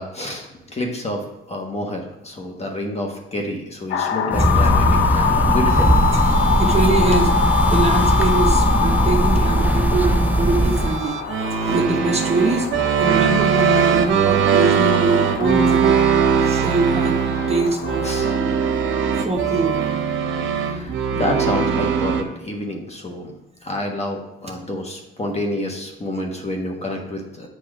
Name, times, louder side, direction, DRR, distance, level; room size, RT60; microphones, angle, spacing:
voice 1, 0.0-6.0 18.0-18.3 20.6-23.3 23.6-27.5, left 1 dB, 30° left, 1 dB, 1.4 m, -28 dB
sound 1, 3.9-18.4, left 7 dB, 70° left, 0.6 m, -24 dB
sound 2, 4.3-11.0, right 1 dB, 10° right, 0.5 m, -19 dB
sound 3, 5.7-22.2, right 7 dB, 75° right, 0.7 m, -22 dB
voice 2, 6.1-7.3 7.7-12.7 13.0-15.9 16.4-17.2 17.5-18.2 19.2-19.8, right 2 dB, 30° right, 2 dB, 1.0 m, -23 dB
8.7 x 2.9 x 5.0 m, 0.88 s
cardioid pair, 90°, 20 cm